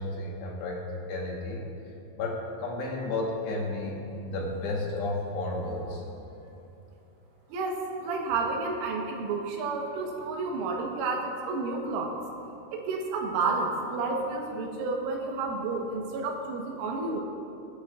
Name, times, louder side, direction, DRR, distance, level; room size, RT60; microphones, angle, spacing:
voice 1, 0.0-1.6 2.2-6.0, left 2 dB, 70° left, -2 dB, 3.3 m, -32 dB
voice 2, 7.5-12.1 12.7-17.2, right 3 dB, 85° right, 1 dB, 3.8 m, -31 dB
24.0 x 10.0 x 2.5 m, 2.7 s
omnidirectional pair, 5.5 m